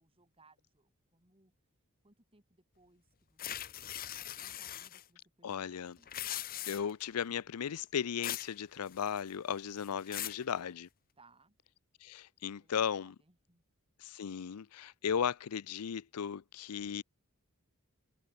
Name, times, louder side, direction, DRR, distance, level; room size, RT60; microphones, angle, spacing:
voice 1, 0.0-1.5 2.0-3.9 4.4-6.4 11.2-11.6 12.6-13.6, right 3 dB, 25° right, 5.0 m, -67 dB
sound 1, 3.4-5.0 6.0-7.0 8.2-8.5 8.9-9.4 9.8-10.4, left 12 dB, 40° left, 0.7 m, -40 dB
voice 2, 5.4-6.0 6.7-10.9 12.0-13.1 14.0-17.0, left 7 dB, 80° left, 0.5 m, -36 dB
head